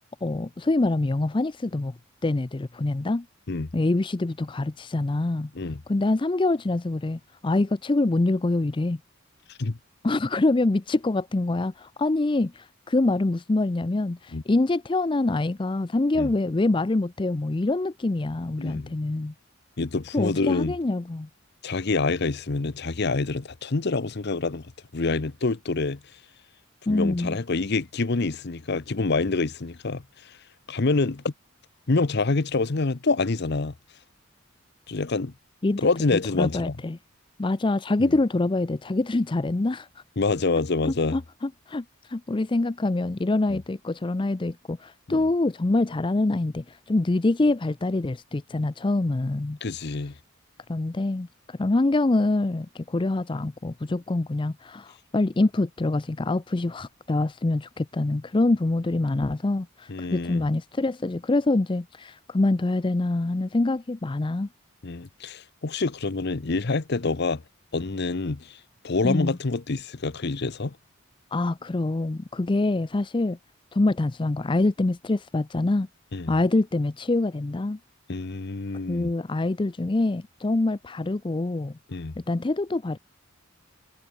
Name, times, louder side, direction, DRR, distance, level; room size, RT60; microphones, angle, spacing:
voice 1, 0.2-2.0 2.2-3.3 3.7-5.5 5.9-9.0 10.0-19.3 20.1-21.3 26.9-27.3 35.6-35.8 36.4-37.0 37.4-39.9 40.8-49.6 50.7-64.5 69.0-69.4 71.3-73.4 73.7-75.9 76.3-77.8 78.9-81.8 82.2-83.0, left 2 dB, 25° left, 0.5 m, -25 dB
voice 2, 18.6-18.9 19.8-20.7 21.6-26.0 26.9-30.4 30.7-31.3 31.9-33.7 34.9-35.3 35.8-36.8 38.0-38.1 40.2-41.2 43.5-43.6 45.1-45.2 49.6-50.1 59.9-60.5 64.8-67.4 67.7-68.6 68.8-70.8 76.1-76.3 78.1-79.1 81.9-82.1, left 3 dB, 50° left, 0.8 m, -26 dB
head